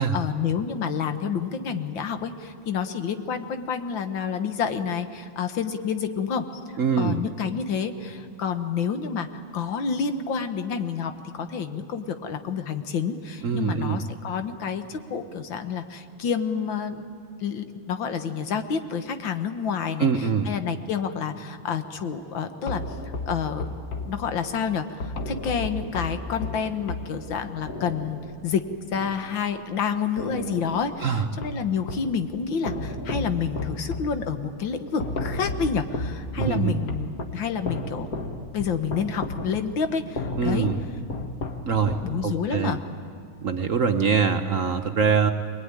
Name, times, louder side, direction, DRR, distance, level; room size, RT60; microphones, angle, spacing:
voice 1, 0.0-6.5 7.0-9.3 9.5-17.1 17.4-22.8 23.3-23.7 24.1-28.7 28.9-38.1 38.5-40.7 42.0-42.8, left 6 dB, 75° left, 8 dB, 1.9 m, -29 dB
voice 2, 6.8-7.2 13.4-14.0 20.0-20.5 31.0-31.3 36.4-36.8 40.4-40.8 41.7-42.0 42.2-42.8 43.4-45.3, right 6 dB, 55° right, 6 dB, 1.0 m, -23 dB
sound 1, 22.7-29.8 30.2-32.2 32.7-42.6, left 2 dB, 50° left, 1.8 m, -34 dB
24.5 x 20.5 x 9.7 m, 2.4 s
omnidirectional pair, 2.1 m